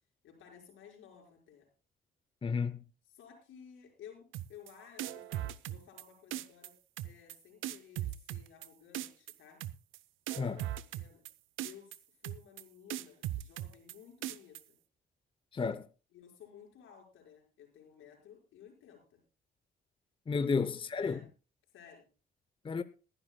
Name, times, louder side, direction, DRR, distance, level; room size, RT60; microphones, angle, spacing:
voice 1, 0.2-1.7 3.0-6.7 7.0-9.6 10.4-11.2 11.6-14.7 16.1-19.2 20.4-20.6 21.0-21.3 21.7-22.0, left 8 dB, 85° left, 5.2 m, -56 dB
voice 2, 2.4-2.8 10.4-10.6 15.5-15.8 20.3-21.2 22.6-22.8, left 5 dB, 25° left, 0.7 m, -32 dB
sound 1, 4.3-4.7 5.0-6.0 6.3-6.7 7.0-7.3 7.6-8.7 8.9-9.3 9.6-10.0 10.3-11.3 11.6-12.0 12.2-12.6 12.9-13.9 14.2-14.6, right 13 dB, 85° right, 0.6 m, -38 dB
22.0 x 11.0 x 2.2 m
cardioid pair, 90°, 20 cm